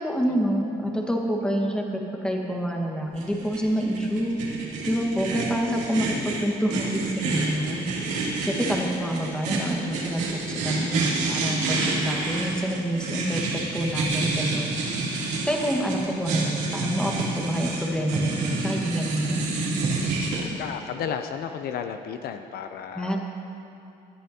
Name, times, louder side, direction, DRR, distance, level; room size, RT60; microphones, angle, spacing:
voice 1, 0.0-4.4 4.8-8.1 8.4-14.8 15.5-19.5 22.9-23.3, equal, 5° left, 0 dB, 1.5 m, -27 dB
sound 1, 3.2-20.4, right 3 dB, 90° right, 2.9 m, -28 dB
voice 2, 20.6-23.3, left 8 dB, 65° left, 8 dB, 0.6 m, -33 dB
18.5 x 11.0 x 2.8 m, 2.9 s
cardioid pair, 110°, 17 cm